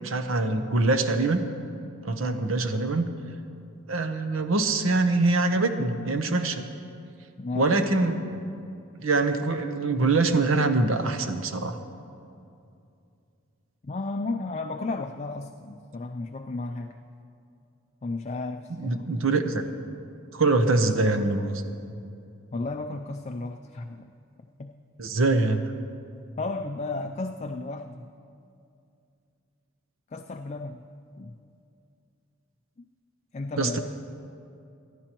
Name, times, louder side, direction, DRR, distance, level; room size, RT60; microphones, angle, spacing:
voice 1, 0.0-1.4 2.0-3.1 3.9-6.7 7.5-8.5 9.0-11.8 18.7-19.6 20.3-21.6 25.0-25.7 33.6-33.8, right 3 dB, 80° right, 8 dB, 0.8 m, -24 dB
voice 2, 2.2-2.5 7.4-7.8 13.8-17.0 18.0-19.1 22.5-24.1 24.6-24.7 26.4-28.1 30.1-30.8 31.2-31.3 32.8-32.9 33.3-33.8, left 3 dB, 35° left, 4 dB, 0.4 m, -33 dB
24.0 x 11.0 x 3.0 m, 2.5 s
head